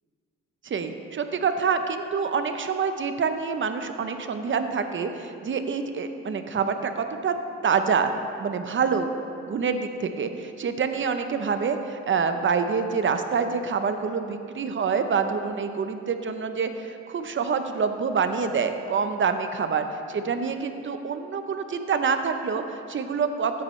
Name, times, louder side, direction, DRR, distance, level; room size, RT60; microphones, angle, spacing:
voice 1, 0.6-7.3 7.6-8.1 8.4-9.1 9.4-23.6, right 5 dB, 40° right, 8 dB, 0.7 m, -26 dB
14.0 x 8.4 x 3.2 m, 2.5 s
cardioid pair, 90°, 30 cm